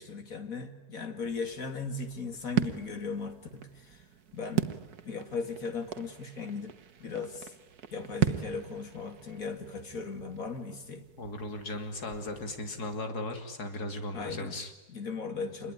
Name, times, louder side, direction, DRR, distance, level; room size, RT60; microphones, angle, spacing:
voice 1, 0.0-4.1 4.3-4.7 5.1-7.5 7.9-11.1 14.1-14.6 14.9-15.7, left 4 dB, 60° left, 7 dB, 2.7 m, -37 dB
sound 1, 1.2-13.0, right 10 dB, 75° right, 1.8 m, -38 dB
voice 2, 11.2-14.7, left 2 dB, 75° left, 7 dB, 3.2 m, -37 dB
27.5 x 21.0 x 9.9 m, 1.1 s
omnidirectional pair, 1.7 m